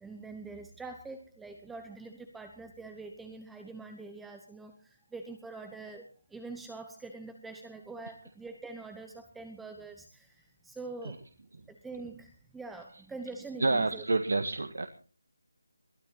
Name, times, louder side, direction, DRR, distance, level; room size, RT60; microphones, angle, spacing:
voice 1, 0.0-11.2 11.7-14.0, right 3 dB, ahead, 5 dB, 0.8 m, -44 dB
voice 2, 13.6-14.9, right 3 dB, 65° right, 8 dB, 1.7 m, -28 dB
22.0 x 12.5 x 4.1 m, 0.38 s
figure-of-eight pair, 175°, 0 cm